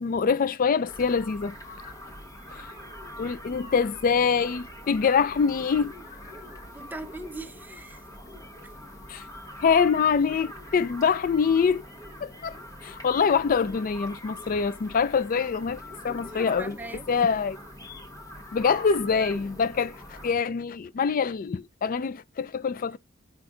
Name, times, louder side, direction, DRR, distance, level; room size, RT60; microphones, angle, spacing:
voice 1, 0.0-1.5 1.8-1.9 2.5-2.7 3.2-5.9 9.1-9.2 9.6-11.8 12.2-16.8 17.1-17.6 18.5-23.0, left 6 dB, 45° left, 0.4 m, -25 dB
sound 1, 0.9-20.3, left 1 dB, 20° left, 1.2 m, -43 dB
voice 2, 6.7-8.0 16.1-17.4, right 2 dB, 10° right, 0.6 m, -41 dB
5.1 x 4.3 x 4.8 m
head